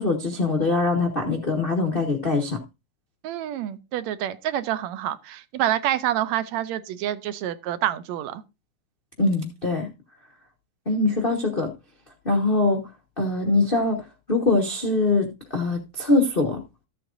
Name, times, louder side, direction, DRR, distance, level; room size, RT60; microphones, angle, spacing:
voice 1, 0.0-2.6 9.2-9.9 10.9-11.7 12.2-12.9 13.2-16.6, left 3 dB, 90° left, 0.4 m, -23 dB
voice 2, 3.2-8.4, right 12 dB, 80° right, 1.9 m, -27 dB
14.5 x 7.7 x 2.5 m
omnidirectional pair, 3.3 m